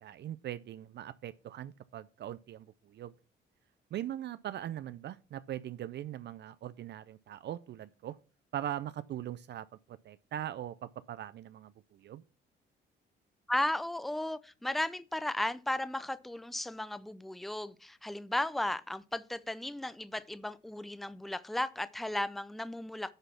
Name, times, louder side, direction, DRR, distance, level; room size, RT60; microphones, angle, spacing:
voice 1, 0.0-3.1 3.9-8.2 8.5-12.2, right 11 dB, 60° right, 0.4 m, -41 dB
voice 2, 13.5-23.1, left 1 dB, ahead, 0.5 m, -35 dB
10.5 x 4.1 x 5.8 m
cardioid pair, 90°, 20 cm